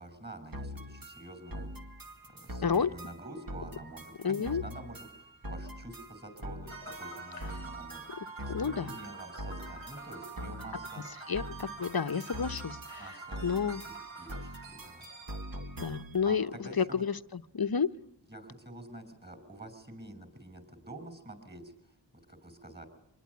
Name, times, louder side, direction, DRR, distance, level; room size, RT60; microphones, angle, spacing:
voice 1, 0.0-1.7 2.3-8.0 8.4-11.0 13.0-13.4 13.7-15.1 16.2-17.0 18.3-21.7 22.3-22.9, right 2 dB, 20° right, 12 dB, 6.0 m, -47 dB
sound 1, 0.5-16.3, equal, 50° right, 2.1 m, -44 dB
voice 2, 4.2-4.6 8.5-8.9 11.3-13.2 13.4-13.8 15.8-16.5 16.8-17.2 17.5-17.9, left 6 dB, 50° left, 10 dB, 1.0 m, -30 dB
sound 2, 6.7-15.6, right 3 dB, 90° right, 7.2 m, -46 dB
25.5 x 20.5 x 9.5 m, 0.78 s
wide cardioid pair, 70°, 45 cm